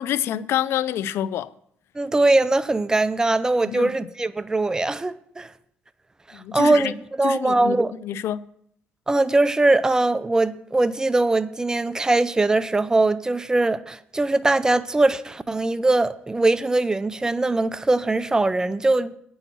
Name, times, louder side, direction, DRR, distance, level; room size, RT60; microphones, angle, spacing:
voice 1, 0.0-1.5 3.6-3.9 6.3-6.9 7.2-7.8 8.0-8.4, left 11 dB, 75° left, 0.4 m, -27 dB
voice 2, 2.0-5.5 6.5-7.9 9.1-19.1, right 2 dB, 15° right, 0.5 m, -21 dB
8.9 x 6.3 x 7.3 m
cardioid pair, 80°, 4 cm